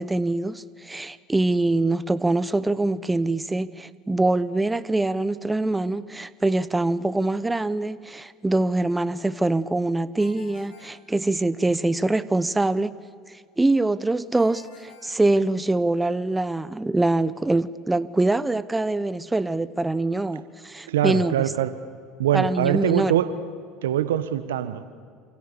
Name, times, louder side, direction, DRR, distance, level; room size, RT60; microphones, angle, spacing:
voice 1, 0.0-12.9 13.6-21.3 22.3-23.2, right 2 dB, 10° right, 1.0 m, -24 dB
Ringtone, 10.2-11.8 14.4-16.0, left 6 dB, 85° left, 4.0 m, -52 dB
voice 2, 20.9-21.8 22.2-23.4 23.8-24.8, right 11 dB, 85° right, 1.5 m, -23 dB
29.0 x 27.0 x 7.1 m
hypercardioid pair, 85°, 0 cm